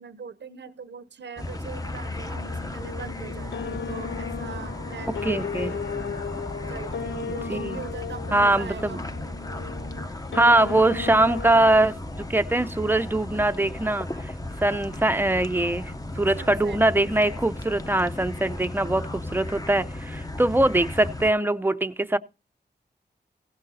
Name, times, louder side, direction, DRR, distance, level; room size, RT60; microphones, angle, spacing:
voice 1, 0.0-5.8 6.6-9.1 16.3-16.8, right 6 dB, 85° right, 0.8 m, -41 dB
sound 1, 1.4-21.3, left 1 dB, 20° left, 0.8 m, -35 dB
sound 2, 2.3-11.9, left 6 dB, 85° left, 0.6 m, -35 dB
voice 2, 5.2-5.7 7.5-7.8 8.3-9.0 10.3-12.0 12.3-14.3 14.6-22.2, right 2 dB, 10° right, 0.6 m, -22 dB
16.0 x 6.6 x 4.1 m
wide cardioid pair, 90°, 18 cm